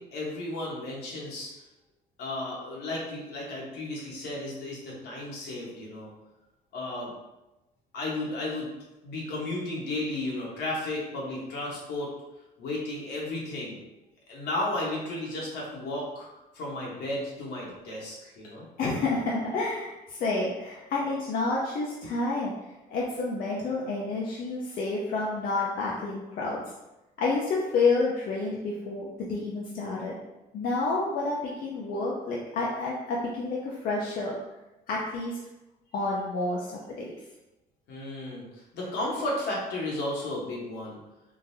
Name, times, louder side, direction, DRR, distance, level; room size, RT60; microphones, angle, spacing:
voice 1, 0.0-1.5 2.2-6.1 6.7-7.1 7.9-8.7 9.0-12.1 12.6-13.8 14.3-16.3 16.5-18.6 37.9-41.0, left 2 dB, 80° left, -4 dB, 1.2 m, -33 dB
voice 2, 18.8-22.5 22.9-26.6 27.2-30.2 30.5-34.4 34.9-35.4 35.9-36.7 37.0-37.1, left 3 dB, 60° left, -4 dB, 0.6 m, -29 dB
3.7 x 2.6 x 2.6 m, 0.99 s
cardioid pair, 110°, 17 cm